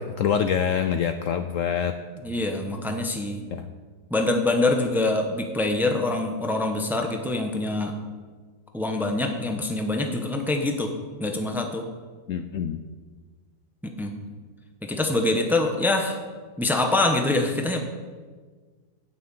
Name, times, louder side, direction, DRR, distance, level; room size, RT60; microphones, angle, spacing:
voice 1, 0.0-1.9 3.5-3.6 12.3-12.8, left 8 dB, 65° left, 8 dB, 0.8 m, -25 dB
voice 2, 2.2-3.4 4.1-7.9 8.7-10.9 11.2-11.9 13.8-14.1 14.8-16.2 16.6-17.8, left 2 dB, ahead, 3 dB, 0.9 m, -25 dB
9.2 x 7.6 x 8.5 m, 1.5 s
omnidirectional pair, 1.7 m